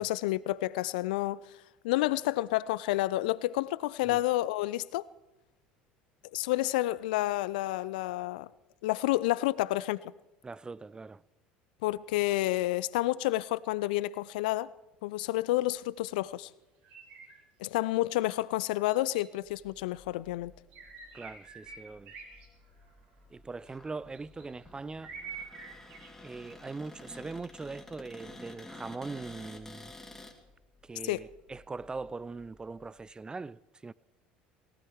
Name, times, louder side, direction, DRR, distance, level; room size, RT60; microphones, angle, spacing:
voice 1, 0.0-1.4 1.8-5.0 6.3-8.5 8.8-10.0 11.8-14.7 15.0-16.5 17.6-20.5 31.0-31.2, left 17 dB, 75° left, 0.4 m, -29 dB
voice 2, 10.4-11.2 21.1-22.1 23.3-25.1 26.2-29.9 30.8-33.9, right 3 dB, 15° right, 0.4 m, -41 dB
sound 1, 16.8-17.4 17.8-17.9 18.9-19.5 20.7-22.5 22.8-23.1 24.1-24.7 25.0-26.1 26.5-26.6, right 5 dB, 70° right, 3.5 m, -46 dB
sound 2, 19.4-33.1, left 2 dB, 30° left, 1.8 m, -62 dB
Cupboard open or close, 23.6-30.3, left 2 dB, 10° left, 2.9 m, -50 dB
18.5 x 16.5 x 4.6 m
hypercardioid pair, 70°, 5 cm